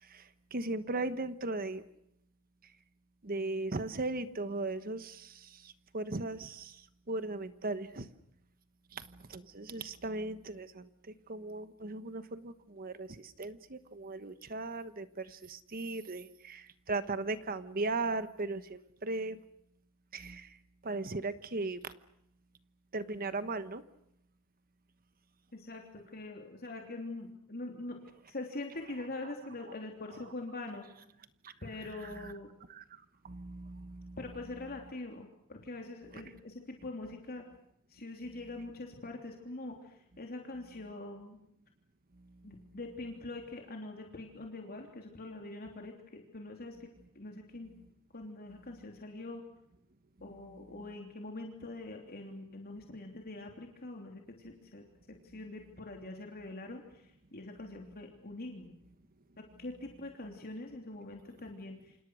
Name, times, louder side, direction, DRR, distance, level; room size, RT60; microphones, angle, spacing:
voice 1, 0.0-1.8 3.2-8.1 8.9-10.9 11.3-19.4 20.1-20.6 20.8-21.9 22.9-23.8 31.4-31.5 31.9-32.3 32.7-34.2 36.1-36.2 42.2-42.3, right 2 dB, 40° right, 12 dB, 1.2 m, -38 dB
voice 2, 25.5-28.0 28.3-30.9 31.6-32.5 34.2-37.4 37.9-41.4 42.4-46.8 47.1-47.7 48.1-49.4 50.2-54.8 55.3-58.7 59.6-62.0, left 2 dB, 45° left, 2 dB, 3.2 m, -44 dB
29.0 x 27.0 x 6.4 m, 0.78 s
head